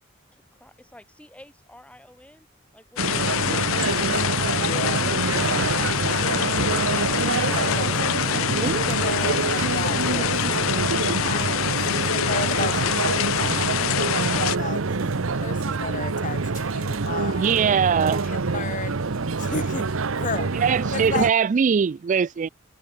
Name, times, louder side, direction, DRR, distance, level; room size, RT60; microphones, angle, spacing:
voice 1, 0.3-2.5, left 1 dB, 5° left, 2.7 m, -51 dB
sound 1, 3.0-14.6, left 11 dB, 80° left, 0.4 m, -26 dB
sound 2, 3.0-21.3, right 4 dB, 85° right, 0.8 m, -26 dB
voice 2, 4.6-5.0 5.8-6.3 7.4-10.9 11.2-17.6 18.0-19.0 19.4-20.5 20.9-21.3, left 4 dB, 40° left, 1.7 m, -34 dB
voice 3, 8.4-8.9 17.2-18.3 20.5-22.5, right 6 dB, 40° right, 0.3 m, -22 dB
Telephone, 14.7-15.9 16.3-18.0 18.6-20.1, equal, 20° right, 2.7 m, -46 dB
head